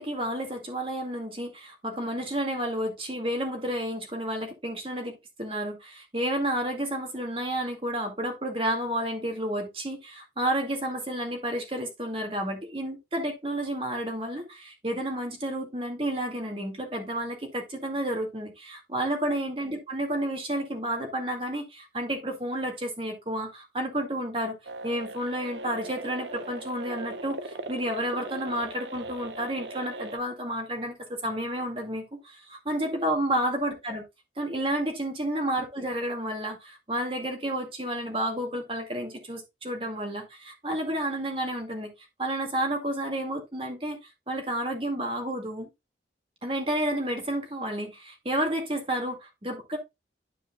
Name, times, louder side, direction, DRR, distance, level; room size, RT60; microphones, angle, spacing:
voice 1, 0.0-24.6 24.8-30.9 31.2-34.0 34.4-41.9 42.2-44.0 44.3-45.7 46.4-49.8, right 1 dB, 30° right, 2.1 m, -31 dB
sound 1, 24.6-30.2, right 2 dB, 90° right, 0.8 m, -39 dB
12.5 x 4.9 x 2.3 m
head